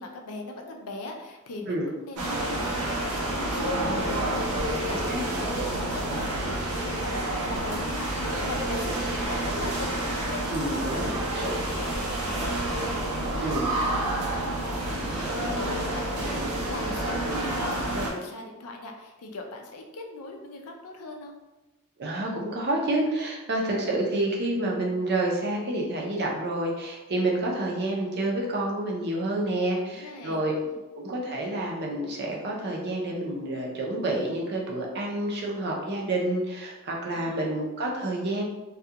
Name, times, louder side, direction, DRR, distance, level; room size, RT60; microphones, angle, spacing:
voice 1, 0.0-21.3 29.8-30.8 37.1-37.5, left 2 dB, 80° left, 2 dB, 0.4 m, -40 dB
sound 1, 2.2-18.1, right 1 dB, 90° right, 0.7 m, -29 dB
voice 2, 4.9-5.2 10.5-11.5 13.4-13.7 22.0-30.6 31.0-38.4, right 1 dB, 50° right, -2 dB, 0.5 m, -29 dB
2.3 x 2.3 x 2.7 m, 1.1 s
head